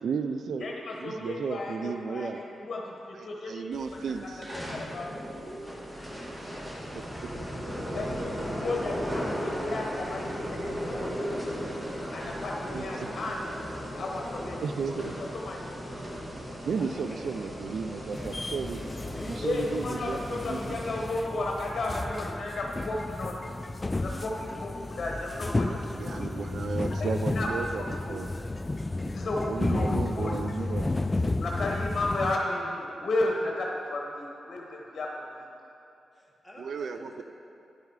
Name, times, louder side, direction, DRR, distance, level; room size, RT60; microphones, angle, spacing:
voice 1, 0.0-0.7 1.0-2.4 3.2-4.4 6.9-7.0 12.7-13.1 14.6-15.3 16.6-18.9 19.3-20.8 25.6-28.3 29.5-30.9 36.6-37.2, right 5 dB, 75° right, 9 dB, 0.3 m, -34 dB
voice 2, 0.6-3.8 4.2-5.2 8.0-11.3 12.1-13.6 13.9-14.9 15.3-15.9 19.4-23.3 24.0-26.2 27.0-27.5 28.1-28.2 29.1-30.3 31.4-35.5, left 2 dB, 55° left, -1 dB, 1.0 m, -34 dB
sound 1, 3.7-21.1, equal, 15° right, 1.4 m, -37 dB
voice 3, 6.0-6.5 7.8-10.4 16.8-19.6 36.1-37.2, equal, ahead, -4 dB, 1.8 m, -49 dB
sound 2, 18.1-32.4, left 2 dB, 30° left, 0.3 m, -32 dB
10.5 x 4.8 x 4.7 m, 2.6 s
cardioid pair, 60°, 0 cm